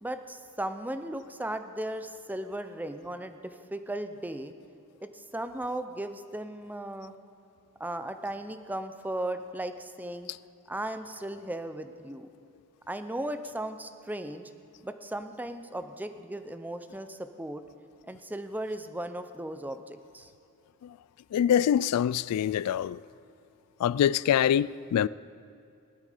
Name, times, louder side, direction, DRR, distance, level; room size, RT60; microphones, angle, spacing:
voice 1, 0.0-4.5 5.0-7.1 7.8-10.3 10.7-12.3 12.9-14.5 14.8-17.6 18.1-20.3, right 1 dB, 10° right, 0.6 m, -36 dB
voice 2, 21.3-23.0 23.8-25.1, left 9 dB, 80° left, 0.3 m, -25 dB
18.5 x 12.5 x 5.0 m
head